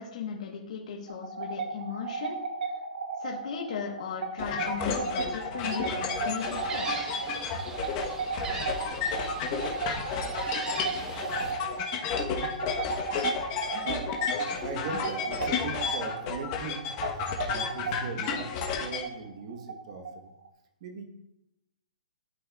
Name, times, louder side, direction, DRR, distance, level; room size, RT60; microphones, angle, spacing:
voice 1, 0.0-2.4 3.2-7.1, left 6 dB, 55° left, -1 dB, 1.1 m, -37 dB
sound 1, 1.1-20.5, right 4 dB, 80° right, 0.9 m, -35 dB
sound 2, 4.4-19.0, left 6 dB, 30° left, 0.9 m, -32 dB
Gull seagull, 6.4-11.5, right 3 dB, 15° right, 0.6 m, -40 dB
voice 2, 12.2-12.6 13.5-16.8 17.1-20.3 20.8-21.0, right 5 dB, 45° right, 5 dB, 1.0 m, -40 dB
11.5 x 4.3 x 2.3 m, 0.87 s
hypercardioid pair, 160°, 4 cm